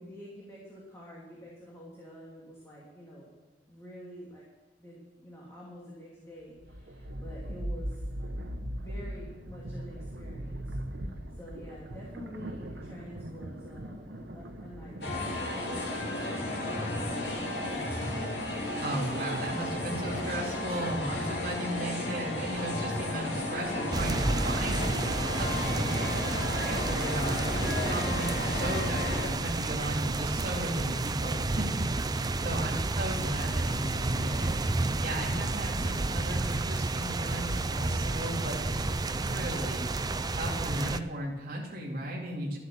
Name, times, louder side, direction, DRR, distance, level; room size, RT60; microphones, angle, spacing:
voice 1, 0.0-3.3 3.7-4.4 4.8-8.0 8.7-10.8 11.0-18.0 32.3-32.7, equal, 15° left, -5 dB, 2.6 m, -48 dB
sound 1, 6.5-15.3, equal, 85° right, 1.0 m, -39 dB
sound 2, 15.0-29.3, left 1 dB, 65° left, 2.9 m, -33 dB
voice 2, 18.8-26.1 26.5-39.9 40.3-42.6, right 1 dB, 55° right, -5 dB, 2.5 m, -36 dB
sound 3, 23.9-41.0, right 2 dB, 25° right, 0.5 m, -31 dB
12.5 x 8.1 x 7.1 m, 1.1 s
head